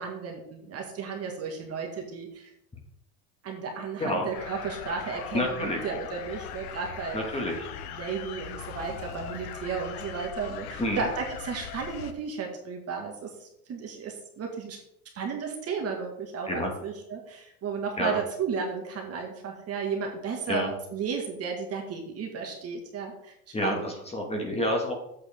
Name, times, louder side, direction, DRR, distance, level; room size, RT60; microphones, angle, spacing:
voice 1, 0.0-2.5 3.4-7.2 7.8-14.8 15.2-23.3 23.6-23.9 24.3-24.5, right 5 dB, 30° right, 1 dB, 1.9 m, -34 dB
sound 1, 4.3-12.1, left 8 dB, 75° left, 1.1 m, -40 dB
voice 2, 5.3-5.8 7.1-7.7 10.8-11.1 16.5-16.7 18.0-18.2 20.5-20.7 23.5-24.9, left 1 dB, 15° left, 1 dB, 2.1 m, -28 dB
8.4 x 7.9 x 3.7 m, 0.78 s
supercardioid pair, 120°, 45 cm